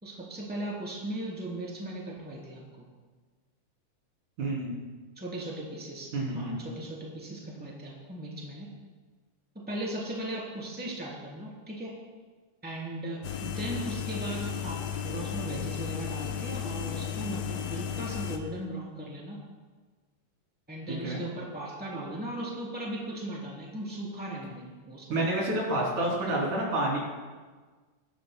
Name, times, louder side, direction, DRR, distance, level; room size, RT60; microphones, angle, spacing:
voice 1, 0.0-2.6 5.2-6.1 6.3-8.7 9.7-11.9 12.6-19.4 20.7-25.2 26.2-26.5, right 1 dB, 5° right, -4 dB, 3.0 m, -37 dB
voice 2, 4.4-4.7 6.1-6.6 20.9-21.2 25.1-27.0, right 1 dB, 65° right, -4 dB, 4.5 m, -29 dB
sound 1, 13.2-18.4, left 8 dB, 70° left, 1.8 m, -34 dB
23.5 x 11.0 x 2.2 m, 1.4 s
omnidirectional pair, 3.7 m